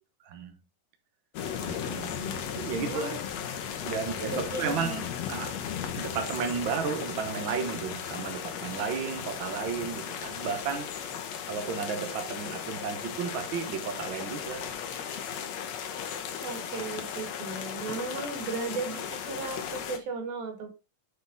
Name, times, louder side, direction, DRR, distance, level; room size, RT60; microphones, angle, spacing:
voice 1, 0.2-0.6 1.6-3.1 3.8-5.6 6.0-14.7, right 6 dB, 70° right, 1.2 m, -33 dB
sound 1, 1.3-20.0, left 8 dB, 65° left, 1.7 m, -36 dB
voice 2, 2.2-3.2 4.3-5.0 16.4-20.7, right 4 dB, 85° right, 3.7 m, -36 dB
7.9 x 4.6 x 3.9 m
omnidirectional pair, 4.0 m